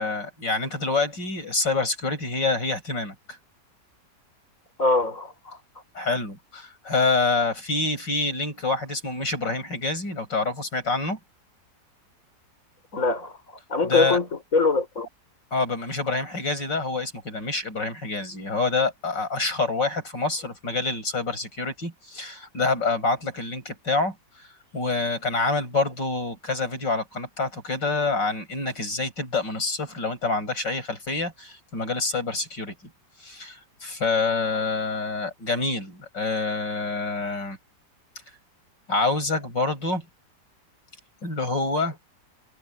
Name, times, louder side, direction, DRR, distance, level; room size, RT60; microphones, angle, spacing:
voice 1, 0.0-3.1 5.9-11.2 13.8-14.2 15.5-24.1 24.7-32.7 33.2-37.6 38.9-40.1 41.2-42.0, left 3 dB, 80° left, 8.4 m, -27 dB
voice 2, 4.8-5.6 12.9-13.3 13.7-15.1, left 3 dB, 45° left, 5.7 m, -23 dB
omnidirectional pair, 1.9 m